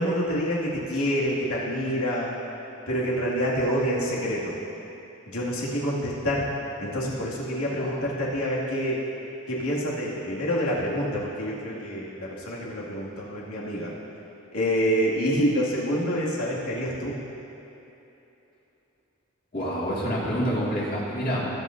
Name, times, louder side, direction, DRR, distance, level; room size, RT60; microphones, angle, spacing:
voice 1, 0.0-2.3 2.9-4.6 5.3-6.5 6.8-9.0 9.5-13.9 14.5-17.2, equal, 80° left, -5 dB, 2.2 m, -27 dB
voice 2, 19.5-21.5, equal, 40° left, -6 dB, 2.2 m, -27 dB
19.0 x 8.7 x 2.6 m, 3.0 s
head